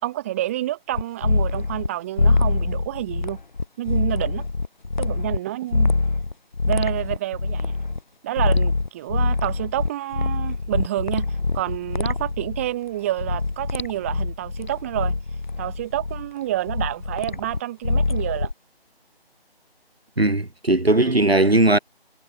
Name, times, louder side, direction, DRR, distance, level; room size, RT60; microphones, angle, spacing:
voice 1, 0.0-3.4 3.8-4.4 5.0-5.9 6.7-7.7 8.2-11.3 11.5-15.1 15.6-18.5 21.0-21.2, right 14 dB, 15° right, 6.4 m, -28 dB
sound 1, 0.9-1.9 2.2-5.4 5.7-8.0 8.4-12.7 13.2-16.3 16.7-18.5, left 3 dB, 50° left, 2.0 m, -24 dB
voice 2, 20.2-21.8, right 2 dB, 75° right, 2.9 m, -18 dB
figure-of-eight pair, 160°, 31 cm